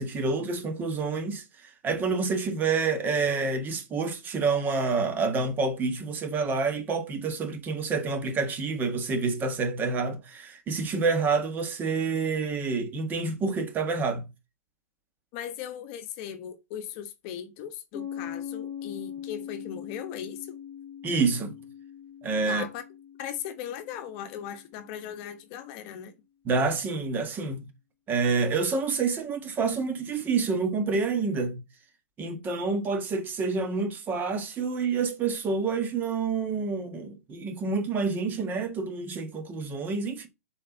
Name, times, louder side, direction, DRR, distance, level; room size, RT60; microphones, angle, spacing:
voice 1, 0.0-14.2 21.0-21.5 22.2-22.6 26.4-27.7 28.1-31.6 32.2-40.3, right 4 dB, 20° right, 1.6 m, -28 dB
voice 2, 15.3-20.5 22.5-22.8 23.2-26.1, left 9 dB, 40° left, 1.2 m, -38 dB
Piano, 17.9-25.2, left 9 dB, 25° left, 4.1 m, -41 dB
6.5 x 4.5 x 3.9 m
figure-of-eight pair, 115°, 9 cm